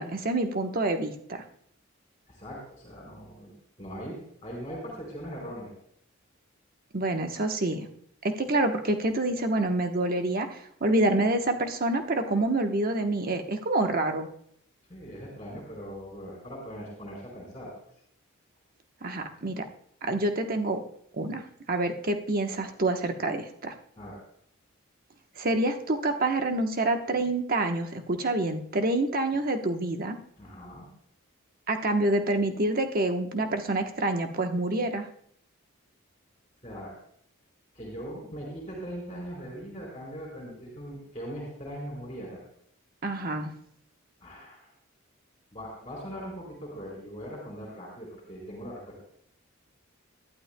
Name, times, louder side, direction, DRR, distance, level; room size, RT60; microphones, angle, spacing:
voice 1, 0.0-1.4 6.9-7.9 8.2-14.3 19.0-19.6 20.0-20.8 21.1-23.7 25.4-30.2 31.7-35.1 43.0-43.5, right 2 dB, 45° right, 5 dB, 1.1 m, -27 dB
voice 2, 2.3-5.7 14.9-17.7 24.0-24.2 30.4-30.9 36.6-36.9 37.7-42.4 44.2-44.7 45.5-49.0, equal, 25° left, -2 dB, 4.2 m, -40 dB
20.5 x 12.0 x 2.2 m, 0.67 s
head